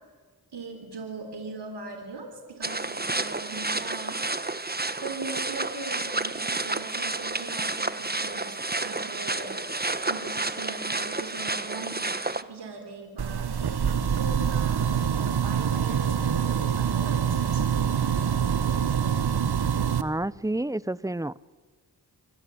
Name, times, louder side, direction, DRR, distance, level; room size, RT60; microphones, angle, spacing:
voice 1, 0.5-4.3 5.0-9.6 10.1-13.5 14.1-18.2, right 3 dB, 85° right, 5 dB, 4.1 m, -40 dB
sound 1, 2.6-12.4, right 2 dB, 25° right, 1.5 m, -30 dB
sound 2, 13.2-20.0, right 8 dB, 70° right, 1.5 m, -25 dB
voice 2, 20.0-21.5, right 1 dB, 10° right, 19 dB, 0.8 m, -30 dB
27.5 x 25.0 x 8.7 m, 1.4 s
cardioid pair, 45°, 40 cm